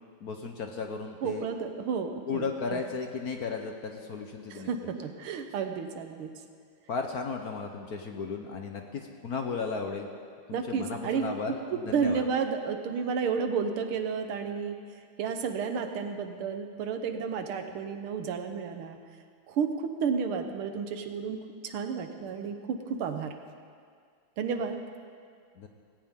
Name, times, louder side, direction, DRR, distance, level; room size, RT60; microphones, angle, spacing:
voice 1, 0.2-1.5 2.3-4.7 6.9-10.1 10.5-12.2 25.6-25.7, left 4 dB, 55° left, 3 dB, 1.2 m, -35 dB
voice 2, 1.2-2.4 2.7-2.8 4.5-6.3 10.5-11.2 11.7-14.8 15.2-19.0 19.5-21.4 21.6-23.3 24.4-24.8, right 6 dB, 80° right, 6 dB, 1.9 m, -31 dB
18.0 x 17.0 x 3.7 m, 2.1 s
omnidirectional pair, 2.3 m